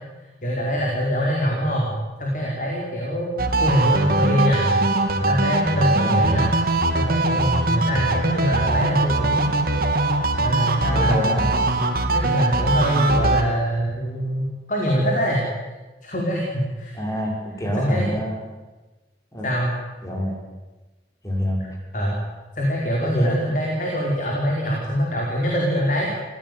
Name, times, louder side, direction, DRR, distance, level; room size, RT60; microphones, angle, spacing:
voice 1, 0.4-1.9 2.2-3.3 3.6-4.6 5.3-6.5 6.9-9.5 10.4-11.1 12.1-15.4 16.0-16.4 16.8-17.0 17.7-18.1 19.4-19.7 21.9-22.2 22.6-26.1, equal, 45° left, -2 dB, 5.0 m, -23 dB
sound 1, 3.4-13.4, right 2 dB, 55° right, 2.3 m, -21 dB
voice 2, 5.9-6.4 10.9-11.5 16.9-18.4 19.3-19.5 20.0-20.4 21.2-21.6 23.0-23.4, equal, 20° left, 0 dB, 5.5 m, -26 dB
27.0 x 17.0 x 9.6 m, 1.2 s
head